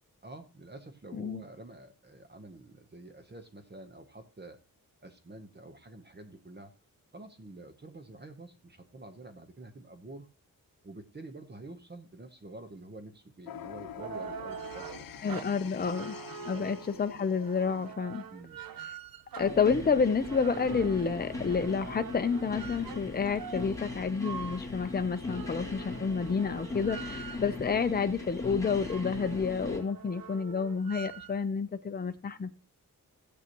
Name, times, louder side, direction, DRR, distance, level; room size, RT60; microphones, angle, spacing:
voice 1, 0.2-4.6 5.0-6.7 7.1-10.3 10.8-15.4 15.8-16.0 16.4-17.1 18.3-18.6, right 2 dB, 30° right, 1.0 m, -48 dB
voice 2, 1.1-1.4 15.2-16.1 16.5-18.2 19.4-32.5, left 5 dB, 25° left, 0.6 m, -29 dB
sound 1, 13.4-17.9, left 10 dB, 75° left, 0.5 m, -45 dB
sound 2, 13.7-27.7 28.2-28.3 28.5-31.4, right 8 dB, 80° right, 0.7 m, -45 dB
sound 3, 19.4-29.8, left 2 dB, 10° left, 2.2 m, -39 dB
16.5 x 8.2 x 3.0 m
wide cardioid pair, 165°, 35 cm